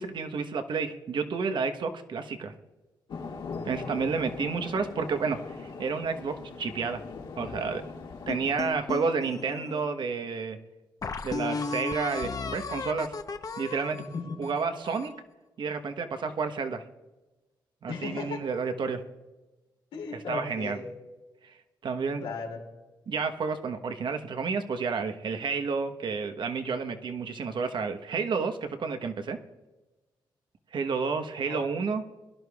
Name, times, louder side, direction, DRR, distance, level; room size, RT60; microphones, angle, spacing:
voice 1, 0.0-2.5 3.6-7.0 7.4-7.8 8.3-10.6 11.2-13.1 13.6-14.0 14.4-15.1 15.6-16.8 17.8-19.0 20.3-20.8 21.4-21.5 21.8-22.2 23.1-29.4 30.7-32.0, right 5 dB, 65° right, 7 dB, 1.1 m, -30 dB
sound 1, 3.1-8.7, left 4 dB, 70° left, 2.0 m, -40 dB
sound 2, 8.3-9.8 10.4-10.5 11.0-15.2, left 4 dB, 45° left, 0.9 m, -35 dB
voice 2, 14.0-14.5 17.9-18.5 19.9-20.9 22.2-22.7 31.5-31.9, left 4 dB, 90° left, 0 dB, 2.8 m, -36 dB
22.5 x 11.5 x 2.4 m, 1.1 s
cardioid pair, 65°, 9 cm